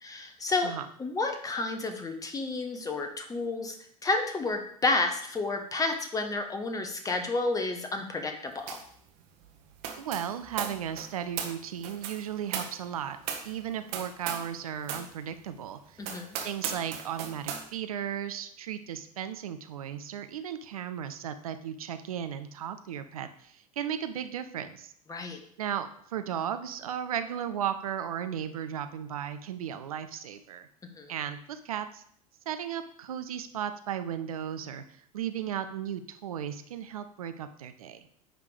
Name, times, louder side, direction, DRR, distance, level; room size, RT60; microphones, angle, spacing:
voice 1, 0.0-0.7 1.0-3.8 4.0-8.8 16.0-16.4 25.1-25.4 31.0-31.1, left 3 dB, 20° left, 6 dB, 1.1 m, -30 dB
sound 1, 8.7-9.0 9.2-14.6 14.8-15.1 15.5-15.6 16.0-17.7, right 8 dB, 50° right, 1.1 m, -37 dB
voice 2, 10.0-13.2 13.4-16.0 16.4-24.9 25.6-30.7 31.1-32.0 32.5-38.0, right 9 dB, 65° right, 9 dB, 0.6 m, -35 dB
9.9 x 3.5 x 4.9 m, 0.65 s
figure-of-eight pair, 75°, 19 cm